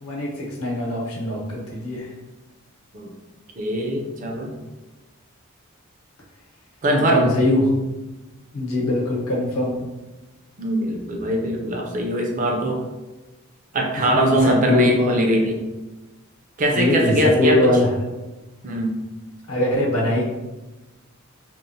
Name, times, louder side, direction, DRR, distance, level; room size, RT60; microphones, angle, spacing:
voice 1, 0.0-2.1 7.1-7.7 8.5-9.8 14.1-15.2 16.7-17.9 19.5-20.2, left 1 dB, 85° left, -4 dB, 0.8 m, -21 dB
voice 2, 3.6-4.5 6.8-7.3 10.6-12.8 13.7-15.6 16.6-17.7 18.6-19.0, right 1 dB, 35° right, 1 dB, 0.4 m, -21 dB
2.9 x 2.0 x 2.6 m, 1.1 s
head